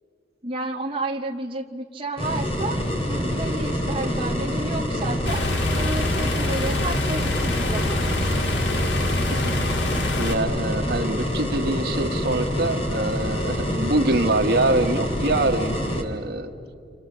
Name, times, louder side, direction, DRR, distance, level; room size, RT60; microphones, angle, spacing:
voice 1, 0.4-2.8 3.1-5.4 5.7-8.0, right 2 dB, 30° right, 0 dB, 0.9 m, -31 dB
sound 1, 2.2-16.0, equal, 30° left, 3.0 m, -26 dB
sound 2, 5.3-10.3, left 2 dB, 85° left, 1.9 m, -26 dB
voice 2, 9.4-16.5, right 2 dB, 60° right, 5 dB, 1.5 m, -25 dB
30.0 x 26.5 x 7.4 m, 2.4 s
head